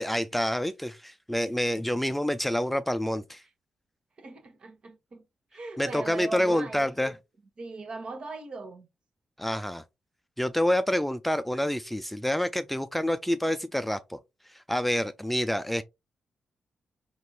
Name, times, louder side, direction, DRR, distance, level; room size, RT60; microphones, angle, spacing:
voice 1, 0.0-3.4 5.8-7.2 9.4-9.8 10.4-14.2 14.7-15.8, left 1 dB, 5° left, 0.4 m, -27 dB
voice 2, 4.2-5.2 5.5-6.8 7.6-8.9, right 3 dB, 50° right, 1.3 m, -39 dB
4.4 x 2.9 x 2.7 m
hypercardioid pair, 40°, 2 cm